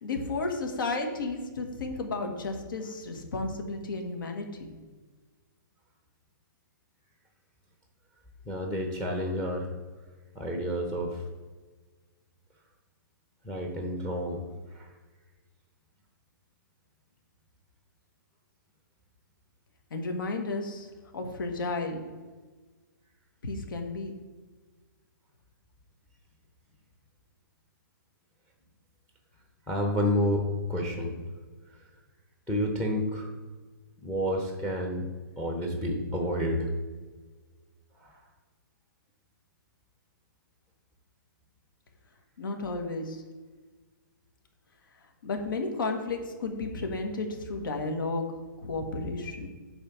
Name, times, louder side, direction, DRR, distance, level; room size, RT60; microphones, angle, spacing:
voice 1, 0.0-4.7 19.9-22.1 23.4-24.1 42.4-43.2 45.2-48.3 48.6-49.5, left 3 dB, 70° left, 4 dB, 1.5 m, -33 dB
voice 2, 8.5-9.7 10.3-11.2 13.4-14.5 14.7-14.9 29.7-30.4 30.7-31.1 32.5-33.3 34.0-35.1 35.4-36.7 38.0-38.1, equal, 10° left, 2 dB, 0.8 m, -29 dB
8.6 x 3.3 x 5.9 m, 1.4 s
hypercardioid pair, 155°, 11 cm